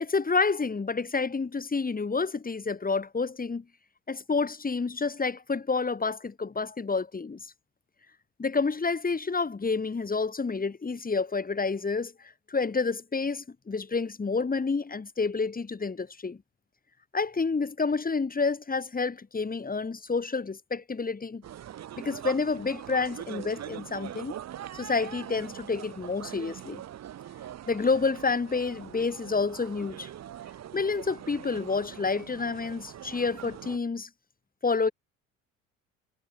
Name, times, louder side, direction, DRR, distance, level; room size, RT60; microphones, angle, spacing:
voice 1, 0.0-3.6 4.1-7.4 8.4-12.1 12.5-16.4 17.1-21.4 22.0-24.4 24.7-26.8 27.7-30.1 30.7-34.1 34.6-34.9, left 4 dB, 20° left, 4.9 m, -29 dB
sound 1, 21.4-33.8, right 11 dB, 40° right, 2.1 m, -42 dB
figure-of-eight pair, 60°, 40 cm